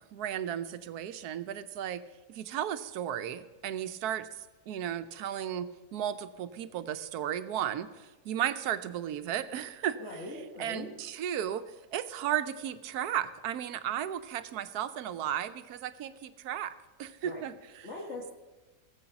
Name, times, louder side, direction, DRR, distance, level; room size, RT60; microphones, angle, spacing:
voice 1, 0.0-2.0 2.3-10.0 10.6-17.9, right 10 dB, 85° right, 12 dB, 1.2 m, -35 dB
voice 2, 10.0-10.9 17.2-17.5 17.8-18.3, left 2 dB, 50° left, -2 dB, 1.6 m, -41 dB
17.5 x 7.7 x 5.9 m, 1.2 s
omnidirectional pair, 1.6 m